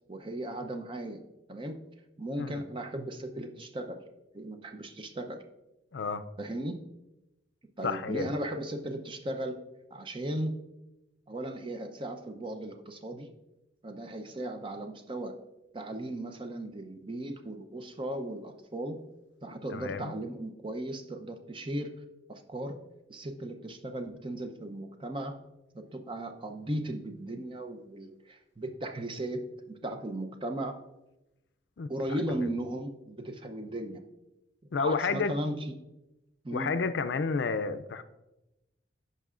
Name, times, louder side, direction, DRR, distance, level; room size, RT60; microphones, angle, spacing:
voice 1, 0.1-1.2 1.5-1.8 2.2-4.0 4.3-5.4 6.4-6.8 7.8-9.6 9.9-10.6 11.3-13.3 13.8-15.3 15.7-19.0 19.4-21.9 22.3-22.8 23.1-25.4 25.7-30.8 31.9-34.0 34.8-35.7 36.4-36.7, right 1 dB, 25° right, 6 dB, 0.6 m, -36 dB
voice 2, 5.9-6.2 7.8-8.3 19.7-20.1 31.8-32.2 34.7-35.3 36.5-38.0, left 4 dB, 65° left, 11 dB, 0.4 m, -31 dB
14.5 x 5.4 x 2.5 m, 0.97 s
head